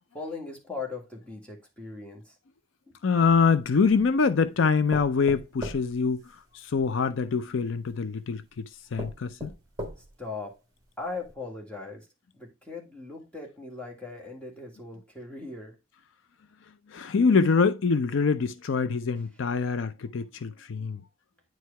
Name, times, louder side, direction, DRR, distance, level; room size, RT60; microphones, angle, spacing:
voice 1, 0.1-2.3 2.9-3.0 10.0-10.6 11.0-12.1 12.3-15.8, left 3 dB, 5° left, 1.8 m, -39 dB
voice 2, 3.0-6.2 6.5-8.6 8.9-9.5 16.9-21.0, left 5 dB, 70° left, 0.5 m, -24 dB
sound 1, 3.2-4.1 4.9-6.9 7.9-8.0 8.5-8.6 9.0-10.3 10.8-10.9 11.2-11.3, equal, 20° right, 1.6 m, -40 dB
9.4 x 4.6 x 3.3 m
head